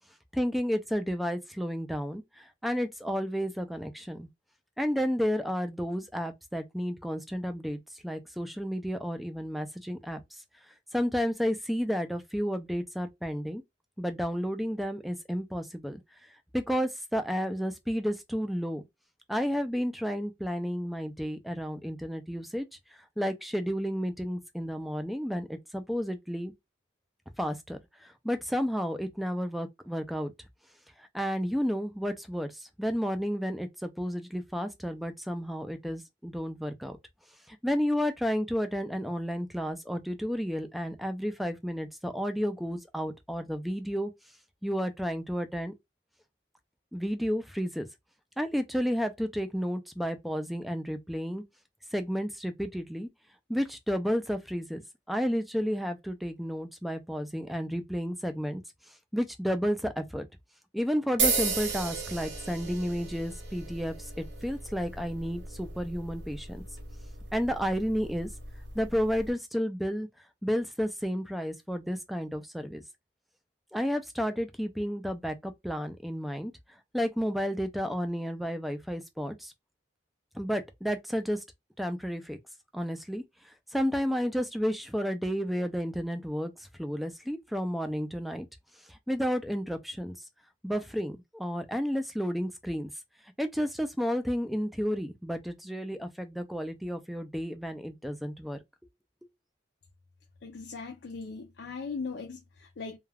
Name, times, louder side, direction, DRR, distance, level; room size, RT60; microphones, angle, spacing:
voice 1, 0.3-4.3 4.8-10.4 10.9-13.6 14.0-16.0 16.5-18.8 19.3-22.7 23.2-26.5 27.4-30.3 31.0-37.0 37.5-44.1 44.6-45.7 46.9-47.9 48.4-51.4 51.9-53.1 53.5-54.8 55.1-58.6 59.1-60.3 60.7-66.6 67.3-68.3 68.7-70.1 70.4-72.8 73.7-76.5 76.9-79.5 80.3-81.4 81.8-82.4 82.7-83.2 83.7-86.5 86.8-88.5 88.9-90.2 90.6-92.9 93.4-98.6, equal, ahead, 0.3 m, -31 dB
sound 1, 61.2-69.3, right 4 dB, 75° right, 0.9 m, -35 dB
voice 2, 100.4-103.0, left 4 dB, 70° left, 0.4 m, -39 dB
2.3 x 2.2 x 3.2 m
head